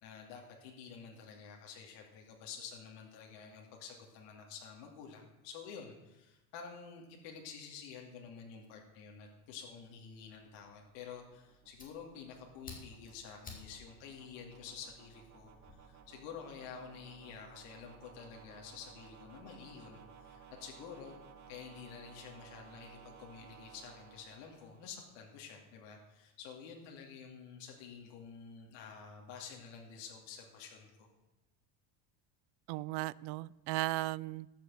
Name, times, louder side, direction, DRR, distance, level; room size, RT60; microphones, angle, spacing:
voice 1, 0.0-21.2 21.5-31.1, left 6 dB, 70° left, 1 dB, 2.6 m, -50 dB
sound 1, 9.3-25.4, right 7 dB, 40° right, 1.5 m, -58 dB
Fire, 11.2-15.7, left 3 dB, 20° left, 3.1 m, -55 dB
voice 2, 32.7-34.6, right 20 dB, 60° right, 21 dB, 0.5 m, -36 dB
13.5 x 6.6 x 7.9 m, 0.99 s
cardioid pair, 135°, 45 cm